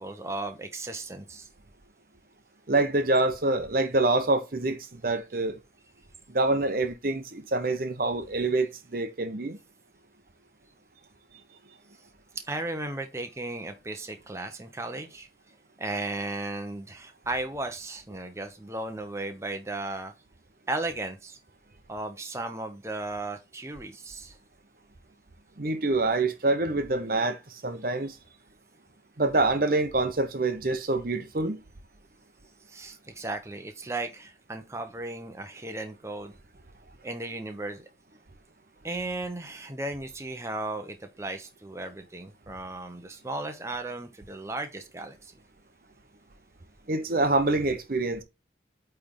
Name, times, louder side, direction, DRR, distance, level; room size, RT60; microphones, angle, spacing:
voice 1, 0.0-1.5 12.5-15.3 15.8-20.1 20.7-21.4 21.9-24.4 32.7-36.3 37.0-37.9 38.8-45.3, right 2 dB, 15° right, 0.8 m, -35 dB
voice 2, 2.7-5.6 6.3-9.6 25.6-28.1 29.2-31.6 46.9-48.2, right 2 dB, 50° right, 0.8 m, -26 dB
8.4 x 3.4 x 3.7 m
head